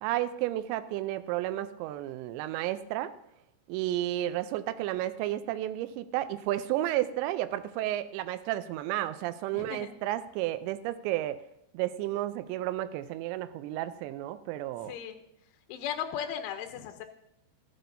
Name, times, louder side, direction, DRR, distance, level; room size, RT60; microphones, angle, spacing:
voice 1, 0.0-3.1 3.7-11.4 11.7-15.0, right 14 dB, 80° right, 12 dB, 2.7 m, -32 dB
voice 2, 9.5-9.9 14.8-15.2 15.7-17.1, left 9 dB, 90° left, 7 dB, 3.2 m, -36 dB
13.5 x 12.0 x 2.7 m, 0.77 s
omnidirectional pair, 5.4 m